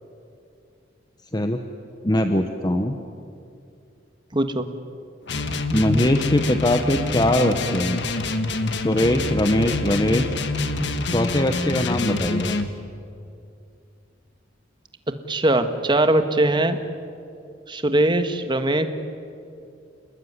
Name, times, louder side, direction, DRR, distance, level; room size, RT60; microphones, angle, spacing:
voice 1, 2.0-3.0 5.7-8.0 8.8-10.3 11.1-12.6, left 1 dB, 20° left, 6 dB, 1.1 m, -21 dB
voice 2, 4.3-4.7 9.8-9.9 15.3-16.8 17.7-18.9, right 1 dB, 25° right, 8 dB, 1.6 m, -21 dB
sound 1, 5.3-12.7, left 3 dB, 60° left, 1.6 m, -26 dB
29.5 x 20.0 x 9.7 m, 2.5 s
head